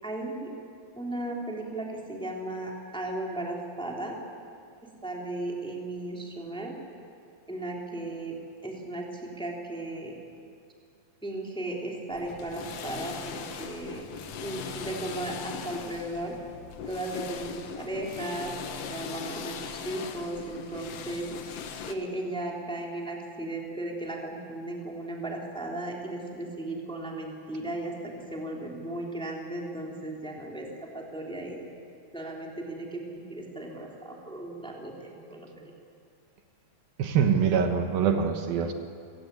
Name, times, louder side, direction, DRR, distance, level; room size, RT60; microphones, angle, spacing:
voice 1, 0.0-0.5 0.9-4.2 4.8-6.8 7.5-10.2 11.2-14.0 14.4-16.4 16.9-21.5 21.9-31.7 32.1-35.6, right 2 dB, ahead, -1 dB, 3.0 m, -36 dB
sound 1, 12.1-21.9, left 6 dB, 65° left, 1.6 m, -39 dB
voice 2, 37.0-38.7, right 7 dB, 75° right, 6 dB, 2.9 m, -24 dB
29.5 x 18.5 x 8.5 m, 2.4 s
omnidirectional pair, 4.4 m